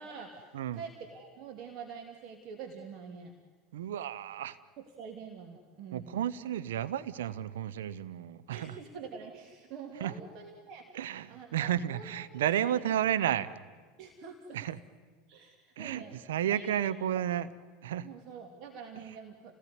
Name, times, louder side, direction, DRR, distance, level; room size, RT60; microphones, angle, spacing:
voice 1, 0.0-3.3 5.0-6.1 8.5-10.9 11.3-12.7 14.0-14.6 15.3-16.1 16.5-16.9 18.0-19.5, right 6 dB, 50° right, 3 dB, 2.8 m, -46 dB
voice 2, 3.7-4.6 5.9-8.8 10.0-10.1 10.9-13.5 14.5-14.8 15.8-16.0 16.3-17.5 17.8-18.1 18.9-19.0, right 10 dB, 70° right, 13 dB, 0.8 m, -32 dB
29.5 x 18.5 x 9.7 m, 1.4 s
figure-of-eight pair, 75°, 0 cm